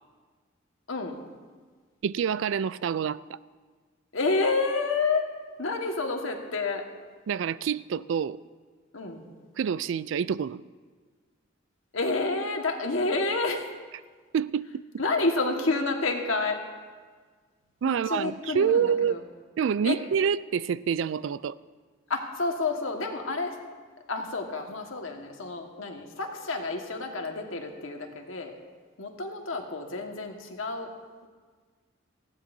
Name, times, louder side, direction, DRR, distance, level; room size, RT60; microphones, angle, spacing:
voice 1, 0.9-1.2 4.1-5.3 5.6-6.8 8.9-9.3 11.9-13.7 15.0-16.6 17.9-19.2 19.8-20.0 22.1-23.6 24.1-28.5 29.0-30.9, left 3 dB, 90° left, 2 dB, 1.6 m, -29 dB
voice 2, 2.0-3.4 7.3-8.4 9.6-10.6 14.3-14.7 17.8-19.2 19.6-21.6, right 7 dB, 70° right, 18 dB, 0.3 m, -27 dB
19.0 x 15.5 x 2.7 m, 1.5 s
head